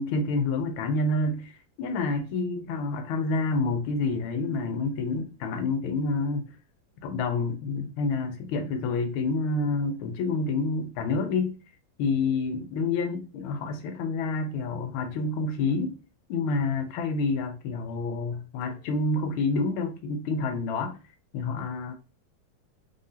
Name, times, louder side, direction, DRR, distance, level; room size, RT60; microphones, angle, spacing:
voice 1, 0.0-1.5 1.8-6.5 7.0-11.6 12.0-15.9 16.3-21.0 21.3-21.9, left 3 dB, 85° left, 1.5 m, -28 dB
3.8 x 3.4 x 2.7 m
omnidirectional pair, 2.3 m